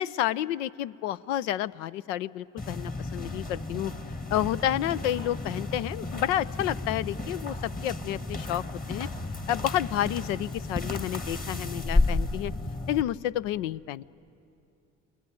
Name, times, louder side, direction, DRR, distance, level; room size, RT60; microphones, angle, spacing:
voice 1, 0.0-3.9 4.3-8.6 8.9-9.1 9.5-12.5 12.9-14.0, left 12 dB, 75° left, 17 dB, 0.6 m, -30 dB
sound 1, 2.6-13.0, left 2 dB, 20° left, 1.5 m, -32 dB
28.5 x 19.5 x 9.3 m, 2.7 s
hypercardioid pair, 60°, 38 cm